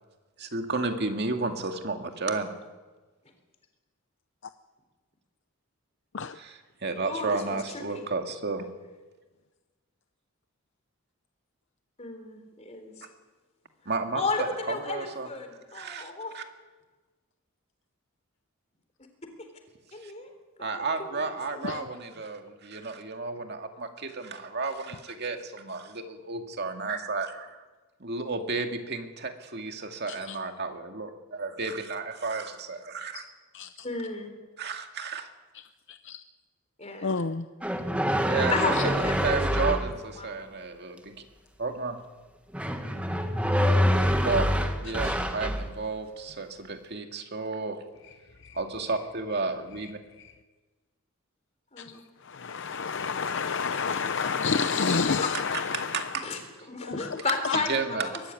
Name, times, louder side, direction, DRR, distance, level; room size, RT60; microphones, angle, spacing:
voice 1, 0.4-2.5 6.3-8.7 13.9-14.3 14.7-15.3 15.7-16.4 20.0-20.1 20.6-27.6 28.0-33.3 34.6-35.3 38.2-41.3 41.6-42.0 43.0-43.2 44.2-47.8 48.5-50.0 55.5-56.3 57.5-58.1, right 3 dB, 50° right, 5 dB, 2.2 m, -32 dB
voice 2, 7.1-8.1 12.0-13.1 14.1-16.3 19.9-20.3 20.7-22.0 33.8-34.3 36.8-37.2 38.5-39.4 40.2-40.5 44.0-44.3 51.7-52.0 56.2-56.4 56.7-58.2, left 3 dB, 30° left, 5 dB, 3.7 m, -34 dB
voice 3, 37.0-37.4 45.0-45.1 52.3-55.9, left 5 dB, 60° left, 10 dB, 0.7 m, -28 dB
sound 1, 37.6-39.9 42.5-45.7, equal, 5° right, 1.4 m, -25 dB
23.0 x 13.5 x 9.7 m, 1.3 s
head